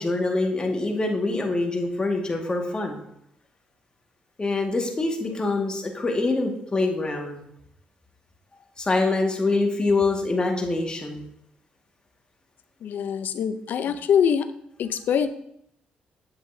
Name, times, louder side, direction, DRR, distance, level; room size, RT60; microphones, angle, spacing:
voice 1, 0.0-3.0 4.4-7.4 8.8-11.2 13.9-14.0, left 3 dB, 30° left, 2 dB, 1.8 m, -25 dB
voice 2, 12.8-14.5 14.8-15.3, left 8 dB, 70° left, 12 dB, 0.6 m, -23 dB
8.1 x 7.5 x 2.7 m, 0.73 s
supercardioid pair, 70°, 3 cm